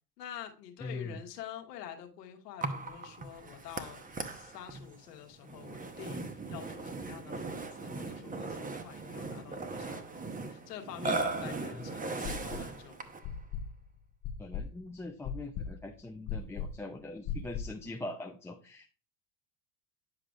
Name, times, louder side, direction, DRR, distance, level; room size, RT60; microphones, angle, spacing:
voice 1, 0.2-13.0, left 10 dB, 90° left, 4 dB, 1.3 m, -47 dB
voice 2, 0.8-1.2 11.7-11.9 14.4-18.9, left 2 dB, 5° left, 1 dB, 0.4 m, -42 dB
Burping eructation, 2.6-13.3, right 3 dB, 15° right, 0.9 m, -38 dB
sound 1, 12.2-12.8 13.2-17.9, left 6 dB, 50° left, 0.8 m, -39 dB
9.7 x 4.9 x 2.4 m, 0.36 s
hypercardioid pair, 95°, 47 cm